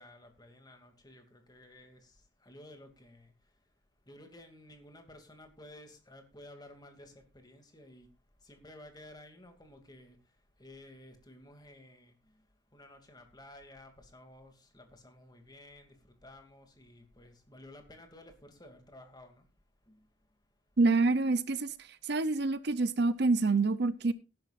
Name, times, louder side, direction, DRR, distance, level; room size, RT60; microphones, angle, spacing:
voice 1, 0.0-2.1 2.4-3.3 4.1-8.1 8.4-10.2 10.6-12.1 12.7-19.4 19.9-20.0, left 1 dB, 20° left, 2.7 m, -54 dB
voice 2, 20.8-21.7 22.1-24.1, right 3 dB, 60° right, 0.7 m, -27 dB
18.5 x 11.0 x 2.6 m
head